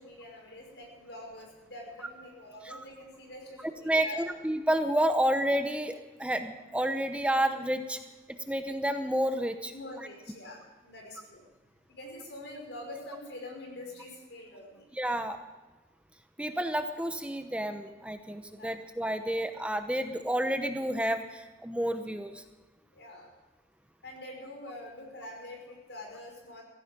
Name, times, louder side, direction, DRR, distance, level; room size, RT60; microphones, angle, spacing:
voice 1, 0.0-4.3 9.7-11.4 11.9-14.8 18.5-18.7 22.9-23.3 24.0-26.6, left 1 dB, 80° left, 1 dB, 5.6 m, -45 dB
voice 2, 3.8-8.0 8.3-9.7 14.9-15.4 16.4-22.4, right 1 dB, 5° right, 7 dB, 0.8 m, -30 dB
17.0 x 15.0 x 5.2 m, 1.2 s
head